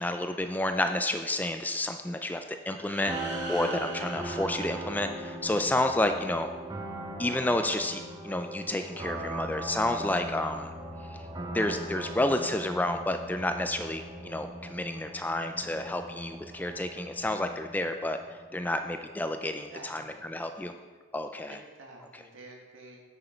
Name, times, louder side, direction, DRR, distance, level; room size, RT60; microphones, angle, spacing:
voice 1, 0.0-6.5 7.2-10.7 11.5-20.7 21.1-21.6, left 1 dB, 10° left, 7 dB, 0.3 m, -30 dB
sound 1, 2.7-5.6, right 2 dB, 60° right, 1.9 m, -42 dB
sound 2, 3.0-19.6, right 1 dB, 20° right, 0.7 m, -40 dB
voice 2, 19.4-20.3 21.5-23.0, right 2 dB, 85° right, 0 dB, 1.7 m, -50 dB
8.8 x 6.4 x 4.4 m, 1.4 s
head